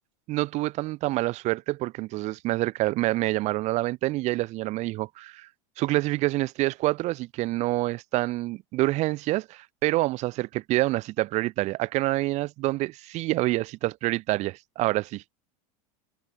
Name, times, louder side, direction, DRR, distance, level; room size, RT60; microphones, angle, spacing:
voice 1, 0.3-5.5 5.8-15.2, right 19 dB, 40° right, 0.5 m, -27 dB
supercardioid pair, 135°, 18 cm